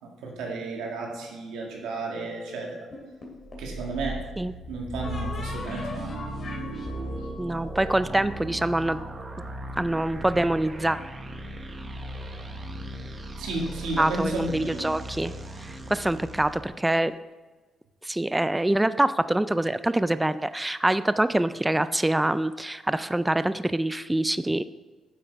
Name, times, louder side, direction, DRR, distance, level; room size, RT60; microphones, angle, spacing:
voice 1, 0.0-2.8 3.6-4.2 4.7-6.2 13.4-14.9, right 2 dB, 90° right, -1 dB, 1.9 m, -33 dB
sound 1, 2.9-3.8 5.0-8.7, left 1 dB, 40° left, 2.2 m, -39 dB
sound 2, 3.4-16.7, right 1 dB, 30° right, 1.0 m, -37 dB
voice 2, 7.4-9.0 9.8-11.0 14.0-15.3 15.6-17.1 18.0-24.6, right 1 dB, 10° right, 14 dB, 0.3 m, -25 dB
9.2 x 7.6 x 3.4 m, 1.3 s
cardioid pair, 90°, 0 cm